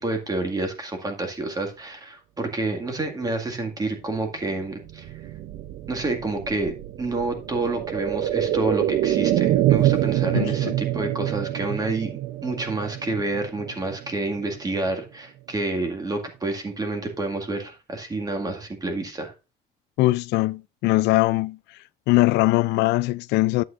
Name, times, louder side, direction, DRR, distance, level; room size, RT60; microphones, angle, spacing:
voice 1, 0.0-5.1 5.9-19.3, right 2 dB, 20° right, 2.0 m, -29 dB
sound 1, 4.8-14.6 14.9-15.0, right 13 dB, 75° right, 0.7 m, -26 dB
voice 2, 10.3-10.7 20.0-21.6 22.1-23.6, left 20 dB, 85° left, 0.4 m, -21 dB
11.5 x 7.9 x 2.5 m
cardioid pair, 110°, 17 cm